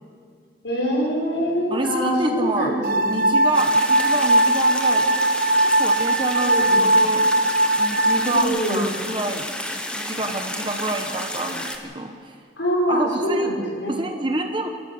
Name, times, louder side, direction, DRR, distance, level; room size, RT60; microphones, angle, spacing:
voice 1, 0.6-2.8 6.4-6.8 8.3-8.8 12.6-13.9, equal, 90° left, -4 dB, 6.3 m, -24 dB
voice 2, 1.7-2.8 3.1-5.1 5.6-7.2 7.8-9.7 10.0-12.3 12.9-13.5 13.9-14.7, right 2 dB, 30° right, 4 dB, 1.2 m, -28 dB
sound 1, 2.8-8.4, right 1 dB, 55° right, 0.7 m, -19 dB
sound 2, 3.5-11.8, left 1 dB, 5° left, 1.4 m, -31 dB
28.0 x 13.5 x 7.3 m, 2.2 s
head